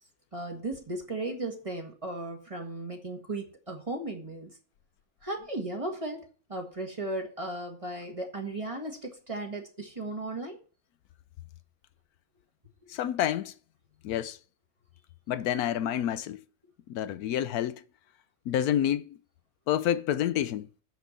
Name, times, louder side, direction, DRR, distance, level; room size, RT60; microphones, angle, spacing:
voice 1, 0.3-4.5 5.2-10.6, right 2 dB, 20° right, 1.7 m, -36 dB
voice 2, 12.9-13.5 14.0-14.4 15.3-16.4 16.9-17.8 18.5-19.1 19.7-20.7, left 11 dB, 80° left, 1.1 m, -28 dB
6.9 x 6.1 x 7.2 m
omnidirectional pair, 1.6 m